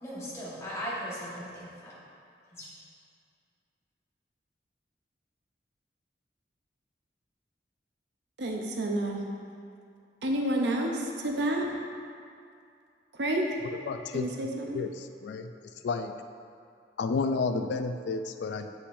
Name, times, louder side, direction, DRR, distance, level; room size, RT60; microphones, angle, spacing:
voice 1, 0.0-1.9 2.5-2.7, equal, 15° left, -8 dB, 1.4 m, -38 dB
voice 2, 8.4-9.2 10.2-11.7 13.1-13.5 14.1-14.8, right 1 dB, 75° right, 1 dB, 0.7 m, -29 dB
voice 3, 13.7-14.3 14.7-15.5 15.8-16.1 17.0-18.7, left 4 dB, 75° left, 8 dB, 0.3 m, -31 dB
8.0 x 5.6 x 2.6 m, 2.4 s
head